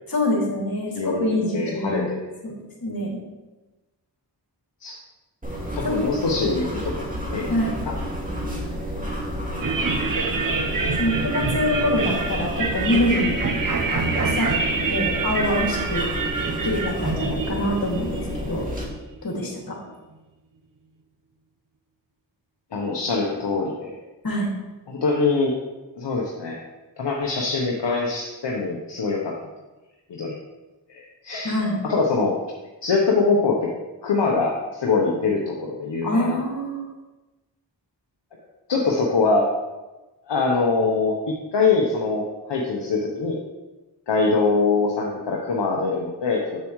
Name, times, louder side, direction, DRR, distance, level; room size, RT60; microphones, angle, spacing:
voice 1, 0.1-2.1 2.4-2.5 2.8-3.2 5.8-6.1 7.5-7.8 11.0-13.3 13.9-16.0 16.6-18.7 19.2-19.8 24.2-24.5 31.4-31.8 36.0-36.8, left 1 dB, 50° left, -3 dB, 2.4 m, -25 dB
voice 2, 0.9-2.0 4.8-5.0 5.7-6.9 7.3-7.5 22.7-23.9 24.9-25.5 25.9-26.6 27.0-29.3 30.1-30.4 30.9-31.6 31.8-32.4 32.8-33.6 34.0-36.4 38.7-39.5 40.3-43.4 44.1-46.6, left 4 dB, 70° left, -2 dB, 1.0 m, -23 dB
sound 1, 5.4-18.8, equal, 20° right, 2.3 m, -31 dB
sound 2, 9.6-19.0, right 4 dB, 50° right, 0.8 m, -26 dB
7.6 x 6.9 x 3.1 m, 1.1 s
cardioid pair, 45°, 44 cm